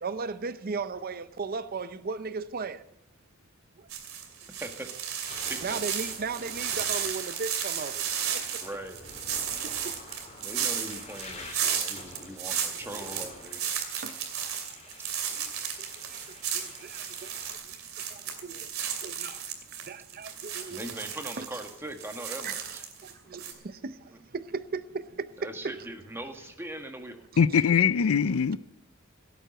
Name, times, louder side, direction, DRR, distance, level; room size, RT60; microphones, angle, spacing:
voice 1, 0.0-2.8 3.8-3.9 5.6-8.1 8.3-8.6 9.5-10.0 14.0-14.2 15.3-16.2 16.5-17.8 18.1-18.7 19.0-19.4 19.8-20.9 21.4-21.5 22.4-25.8, right 4 dB, 45° right, 0.6 m, -37 dB
sound 1, 3.9-23.1 23.4-23.5, right 8 dB, 85° right, 2.7 m, -34 dB
sound 2, 4.4-4.6 5.1-17.5, left 3 dB, 35° left, 3.3 m, -49 dB
voice 2, 5.4-5.8 8.6-9.0 10.4-13.6 20.7-22.8 25.4-27.3, right 1 dB, 10° right, 1.6 m, -40 dB
voice 3, 27.4-28.6, left 6 dB, 75° left, 0.5 m, -22 dB
17.0 x 9.1 x 8.0 m
head